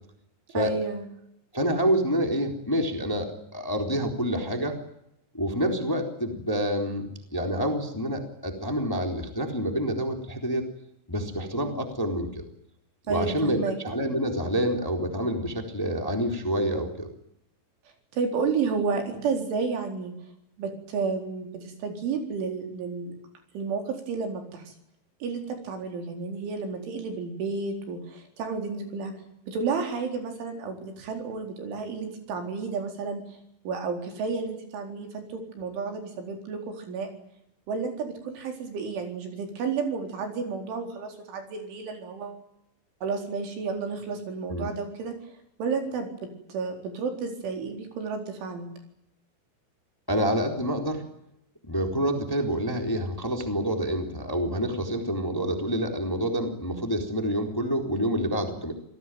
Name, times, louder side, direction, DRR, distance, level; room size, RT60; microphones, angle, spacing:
voice 1, 0.5-1.1 13.1-13.8 18.1-20.2 20.6-23.1 23.5-24.7 25.2-29.1 29.5-33.4 33.6-37.1 37.7-42.4 43.0-45.2 45.6-48.7, right 5 dB, 85° right, 4 dB, 6.7 m, -31 dB
voice 2, 1.5-4.8 5.3-10.7 11.1-12.4 13.1-17.1 44.5-44.7 50.1-51.0 51.7-58.7, equal, 5° left, 4 dB, 2.9 m, -27 dB
28.0 x 18.0 x 9.3 m, 0.77 s
omnidirectional pair, 5.4 m